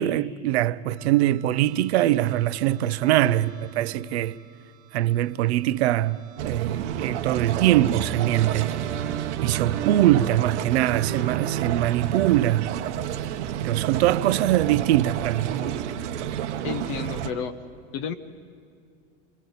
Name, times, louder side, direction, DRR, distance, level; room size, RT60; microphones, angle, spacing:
voice 1, 0.0-4.4 4.9-8.7 9.4-12.7 13.6-15.5, right 14 dB, 65° right, 0.6 m, -22 dB
sound 1, 1.0-17.5, right 9 dB, 25° right, 0.6 m, -40 dB
sound 2, 6.4-17.3, right 10 dB, 85° right, 1.0 m, -30 dB
voice 2, 16.6-17.5 17.9-18.1, left 8 dB, 30° left, 0.5 m, -31 dB
27.5 x 23.5 x 4.1 m
supercardioid pair, 180°, 34 cm